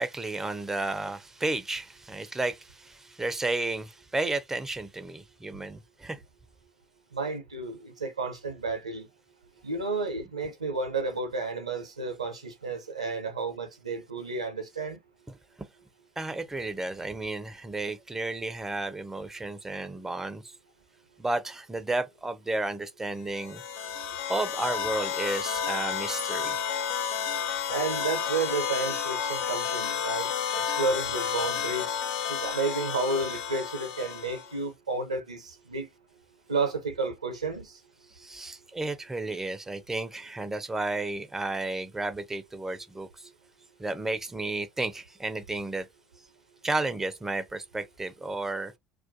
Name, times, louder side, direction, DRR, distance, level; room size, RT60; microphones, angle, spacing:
voice 1, 0.0-6.2 16.2-20.4 21.2-23.6 24.3-26.6 38.2-43.1 43.8-45.9 46.6-48.7, right 2 dB, 10° right, 0.4 m, -32 dB
voice 2, 7.1-9.1 9.6-15.0 27.7-31.9 32.3-35.9 36.5-37.7, right 3 dB, 85° right, 0.5 m, -31 dB
sound 1, 23.3-34.6, left 7 dB, 55° left, 0.4 m, -31 dB
2.3 x 2.1 x 2.6 m
figure-of-eight pair, 60°, 3 cm